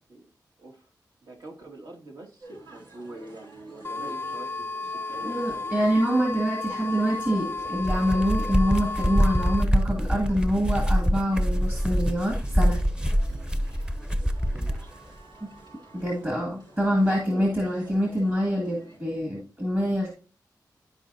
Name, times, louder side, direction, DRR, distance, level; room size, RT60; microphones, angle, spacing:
voice 1, 1.2-5.9 14.5-14.9 17.3-17.5, right 2 dB, 65° right, 0 dB, 2.1 m, -44 dB
sound 1, 2.4-19.0, right 2 dB, 80° right, 4.2 m, -51 dB
sound 2, 3.8-9.6, left 3 dB, 30° left, 0.3 m, -33 dB
voice 2, 5.2-12.8 15.4-15.5 15.9-20.1, equal, 30° right, -1 dB, 2.0 m, -26 dB
sound 3, 7.7-14.8, equal, 10° right, 0.8 m, -24 dB
13.5 x 4.7 x 2.7 m, 0.37 s
cardioid pair, 60°, 7 cm